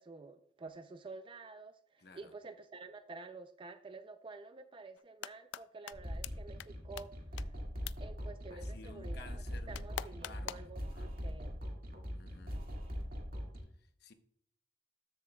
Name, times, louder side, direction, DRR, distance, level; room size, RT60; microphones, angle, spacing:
voice 1, 0.0-7.6 8.0-9.3 9.7-11.6, right 3 dB, 30° right, 0.4 m, -50 dB
voice 2, 2.0-2.3 8.5-11.2 12.2-12.6 13.8-14.1, left 3 dB, 60° left, 0.8 m, -56 dB
sound 1, 5.0-5.6 5.9-6.0 6.2-6.3 6.6-6.7 7.0-7.1 7.4-7.5 7.9-8.0 9.7-10.7, left 11 dB, 85° left, 0.3 m, -41 dB
sound 2, 5.9-13.6, equal, 55° right, 1.9 m, -42 dB
13.0 x 7.4 x 2.2 m
head